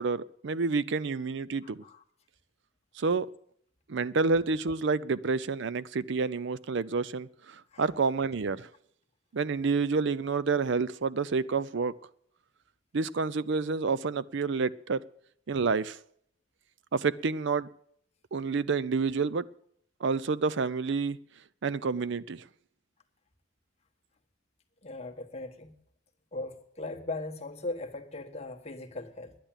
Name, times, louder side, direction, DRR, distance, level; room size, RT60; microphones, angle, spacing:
voice 1, 0.0-1.8 3.0-3.3 3.9-8.7 9.3-11.9 12.9-15.0 15.5-16.0 16.9-17.7 18.3-19.4 20.0-21.2 21.6-22.4, right 4 dB, 60° right, 0.5 m, -29 dB
voice 2, 1.6-2.0 7.7-7.9 24.8-25.7 26.3-29.4, left 2 dB, 30° left, 1.4 m, -39 dB
10.5 x 10.0 x 8.9 m
head